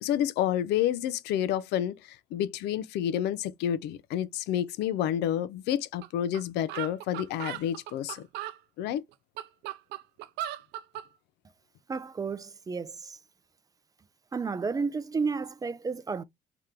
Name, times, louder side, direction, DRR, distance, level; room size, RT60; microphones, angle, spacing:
voice 1, 0.0-8.3 8.8-9.0, left 10 dB, 80° left, 0.4 m, -29 dB
sound 1, 6.0-6.1 6.3-6.4 6.7-8.6 9.1-11.1, right 13 dB, 80° right, 0.5 m, -37 dB
voice 2, 11.9-13.2 14.3-16.2, right 4 dB, 20° right, 0.4 m, -32 dB
3.3 x 2.8 x 3.7 m
cardioid pair, 110°, 17 cm